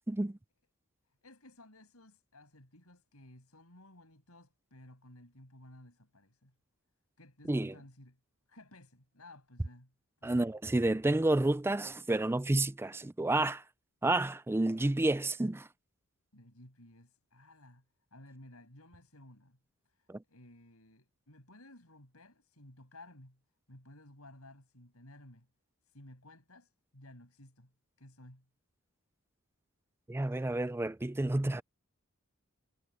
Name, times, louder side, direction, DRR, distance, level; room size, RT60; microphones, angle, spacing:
voice 1, 0.1-0.4 7.5-7.7 10.2-13.6 14.0-15.7 20.1-20.2 30.1-31.6, right 2 dB, 10° right, 0.4 m, -30 dB
voice 2, 1.1-6.5 7.2-8.2 8.5-9.9 10.2-10.5 16.3-17.8 18.1-19.6 19.9-23.4 23.7-25.5 25.8-27.7 28.0-28.5, left 1 dB, 90° left, 6.9 m, -56 dB
head